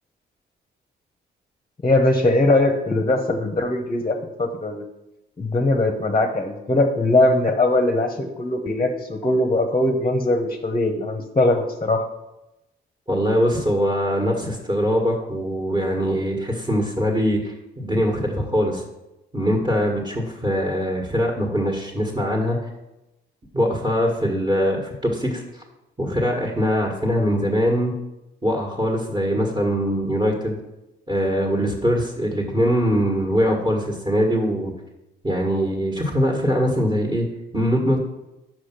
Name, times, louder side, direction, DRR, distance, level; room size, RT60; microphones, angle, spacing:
voice 1, 1.8-4.8 5.4-12.0, left 2 dB, 25° left, 4 dB, 0.9 m, -20 dB
voice 2, 13.1-18.8 19.3-22.7 23.5-25.6 26.0-27.9 28.4-30.6 31.1-34.7 35.2-37.3 37.5-38.0, equal, 20° right, -1 dB, 1.7 m, -22 dB
6.1 x 4.9 x 5.9 m, 0.95 s
supercardioid pair, 65°, 21 cm